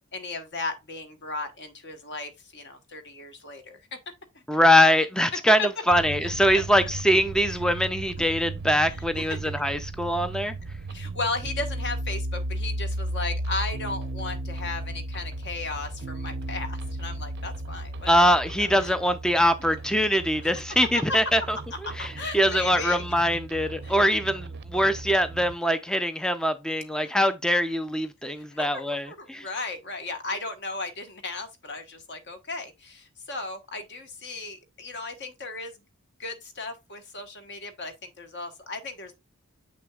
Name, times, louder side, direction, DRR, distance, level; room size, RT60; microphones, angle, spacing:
voice 1, 0.1-4.0 5.6-5.7 6.2-6.3 7.5-7.6 8.2-8.3 8.9-9.4 10.9-18.3 18.6-18.9 19.3-19.4 20.2-20.5 20.9-21.0 22.0-23.0 23.8-24.1 27.0-27.1 28.3-35.8 36.2-39.1, left 3 dB, 50° left, 1.2 m, -36 dB
voice 2, 4.5-10.5 18.1-21.6 22.0-29.5, equal, 5° left, 0.4 m, -23 dB
sound 1, 5.9-25.6, right 1 dB, 50° right, 0.5 m, -35 dB
6.8 x 6.1 x 2.3 m
head